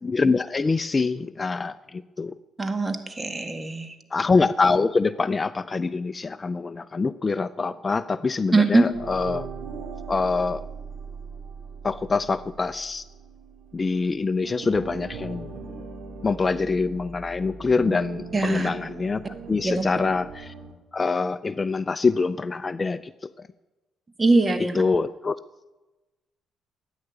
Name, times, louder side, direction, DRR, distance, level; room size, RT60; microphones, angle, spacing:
voice 1, 0.0-2.3 4.1-9.5 10.1-10.6 11.8-13.0 13.7-15.5 16.2-19.2 19.5-20.5 20.9-23.3 24.8-25.4, left 4 dB, 30° left, 15 dB, 0.4 m, -25 dB
voice 2, 2.6-3.9 8.5-8.9 18.3-18.7 19.6-19.8 24.2-24.8, right 3 dB, 25° right, 8 dB, 1.8 m, -22 dB
sound 1, 8.9-14.1 14.4-20.7, right 4 dB, 85° right, 3.2 m, -39 dB
13.5 x 9.9 x 8.2 m, 1.1 s
cardioid pair, 90°, 0 cm